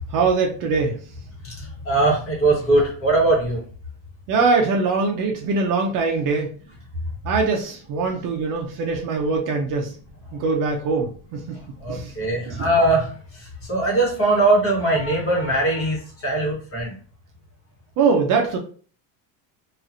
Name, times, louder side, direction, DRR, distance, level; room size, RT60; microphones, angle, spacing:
voice 1, 0.1-1.0 4.3-6.5 7.2-9.9 10.3-11.6 11.9-12.1 12.5-12.7 18.0-18.6, right 4 dB, 45° right, 1 dB, 0.5 m, -22 dB
voice 2, 1.4-3.6 11.5-16.9, right 2 dB, 30° left, -3 dB, 1.2 m, -21 dB
2.9 x 2.4 x 2.5 m, 0.42 s
cardioid pair, 170°, 45 cm